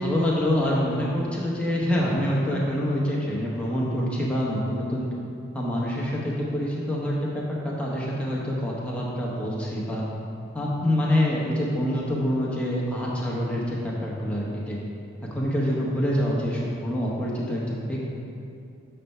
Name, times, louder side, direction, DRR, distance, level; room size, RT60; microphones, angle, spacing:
voice 1, 0.0-5.1 5.5-10.0 10.5-14.8 15.3-18.0, equal, 5° left, -5 dB, 0.9 m, -26 dB
7.6 x 3.4 x 5.4 m, 2.6 s
head